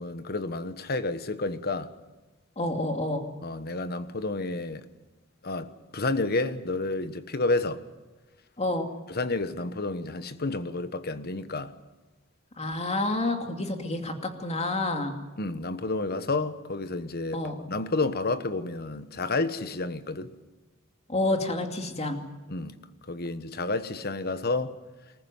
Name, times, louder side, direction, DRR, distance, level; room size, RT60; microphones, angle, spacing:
voice 1, 0.0-1.9 3.4-4.8 5.4-7.8 9.1-11.7 15.4-20.3 22.5-22.8 23.1-24.8, left 2 dB, 50° left, 1.3 m, -30 dB
voice 2, 2.6-3.3 8.6-8.9 12.6-15.2 17.3-17.5 21.1-22.2, left 2 dB, 30° left, 2.6 m, -29 dB
26.0 x 14.5 x 9.5 m
head